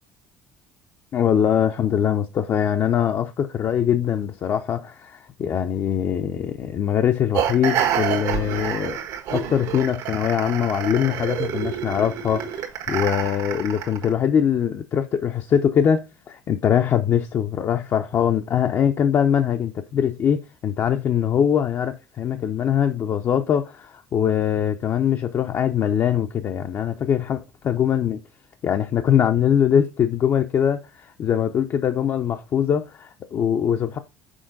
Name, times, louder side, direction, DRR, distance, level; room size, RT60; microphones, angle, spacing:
voice 1, 1.1-9.0 9.3-27.4 27.6-28.2 28.6-34.0, left 9 dB, 45° left, 0.5 m, -22 dB
sound 1, 7.3-14.1, right 9 dB, 75° right, 1.4 m, -28 dB
6.3 x 4.4 x 3.9 m
cardioid pair, 115°, 7 cm